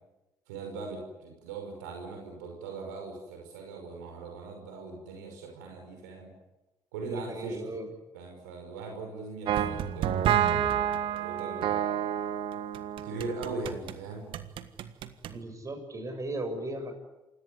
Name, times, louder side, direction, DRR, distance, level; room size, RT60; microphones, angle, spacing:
voice 1, 0.5-6.3 6.9-7.6 8.1-11.9 13.0-14.3, right 3 dB, 90° right, 2 dB, 5.7 m, -40 dB
voice 2, 7.1-7.9 15.3-16.9, right 1 dB, 35° right, 6 dB, 7.6 m, -36 dB
sound 1, 9.5-14.0 14.3-15.4, right 10 dB, 70° right, 1.5 m, -29 dB
28.0 x 18.0 x 9.8 m, 1.0 s
hypercardioid pair, 55°, 9 cm